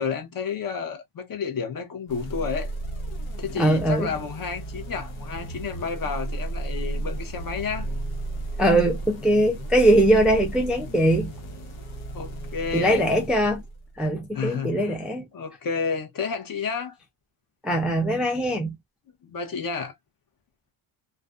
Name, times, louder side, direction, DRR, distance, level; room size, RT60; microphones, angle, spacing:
voice 1, 0.0-2.7 3.4-7.9 12.1-13.0 14.3-15.0 15.3-17.0 19.2-19.9, left 5 dB, 45° left, 0.7 m, -31 dB
sound 1, 2.1-14.0, right 2 dB, 75° left, 1.0 m, -34 dB
voice 2, 3.6-4.1 8.6-11.3 12.7-13.6 14.0-15.3 17.6-18.8, right 1 dB, ahead, 0.3 m, -21 dB
2.5 x 2.2 x 2.4 m
cardioid pair, 135°, 50 cm